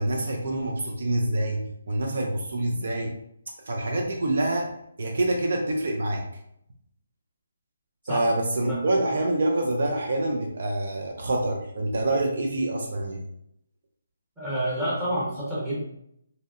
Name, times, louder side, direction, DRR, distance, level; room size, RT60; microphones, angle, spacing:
voice 1, 0.0-3.2 3.7-4.7 5.0-6.2 8.1-13.2, right 1 dB, 60° right, 1 dB, 0.4 m, -26 dB
voice 2, 8.6-8.9 14.4-15.8, right 1 dB, 10° right, -10 dB, 0.9 m, -28 dB
2.7 x 2.0 x 2.4 m, 0.75 s
hypercardioid pair, 165°, 0 cm